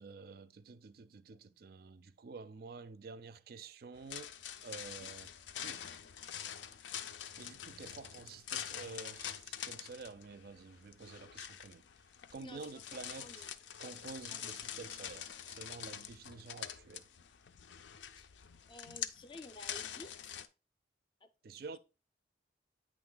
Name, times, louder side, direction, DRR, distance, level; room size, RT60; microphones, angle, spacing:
voice 1, 0.0-4.3 4.6-5.3 5.6-5.9 6.4-6.6 7.4-11.9 12.3-13.5 13.8-17.1 21.4-21.8, right 4 dB, 55° right, 0.4 m, -50 dB
sound 1, 4.0-20.5, left 9 dB, 85° left, 0.5 m, -45 dB
voice 2, 12.4-13.5 14.3-14.5 18.2-18.3 18.7-20.3 21.2-21.3, left 2 dB, 25° left, 0.4 m, -53 dB
8.7 x 3.1 x 3.8 m
head